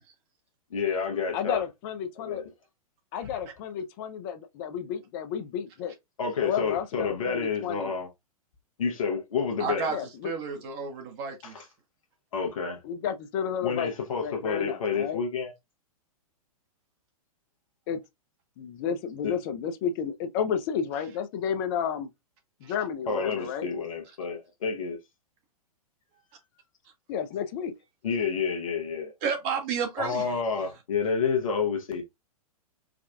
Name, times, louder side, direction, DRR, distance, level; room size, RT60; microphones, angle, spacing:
voice 1, 0.7-1.7 2.1-2.4 6.2-8.1 8.8-9.9 11.4-11.6 12.3-12.8 13.6-15.5 19.2-19.4 23.1-25.0 28.0-29.1 30.0-32.0, left 5 dB, 60° left, 0.9 m, -29 dB
voice 2, 1.3-2.4 3.1-5.9 6.4-7.9 9.9-10.6 12.8-13.9 14.2-15.2 17.9-18.0 18.6-22.1 22.6-23.7 27.1-27.7, left 8 dB, 35° left, 0.6 m, -32 dB
voice 3, 9.6-11.7 22.6-22.7 29.2-30.3, right 6 dB, 35° right, 0.9 m, -32 dB
4.8 x 2.3 x 2.3 m
figure-of-eight pair, 105°, 19 cm